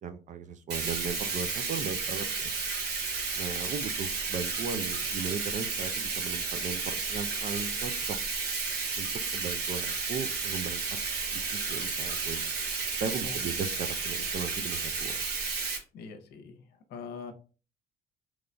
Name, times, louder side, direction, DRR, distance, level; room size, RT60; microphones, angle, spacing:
voice 1, 0.0-2.5 3.4-8.2 8.9-10.8 11.3-12.5 13.0-15.2, right 6 dB, 45° right, 9 dB, 0.5 m, -37 dB
Bathtub (filling or washing), 0.7-15.8, right 4 dB, 75° right, 1.1 m, -32 dB
voice 2, 15.9-16.6 16.9-17.3, left 5 dB, 75° left, 6 dB, 0.8 m, -42 dB
3.8 x 3.1 x 2.2 m, 0.36 s
cardioid pair, 110°, 17 cm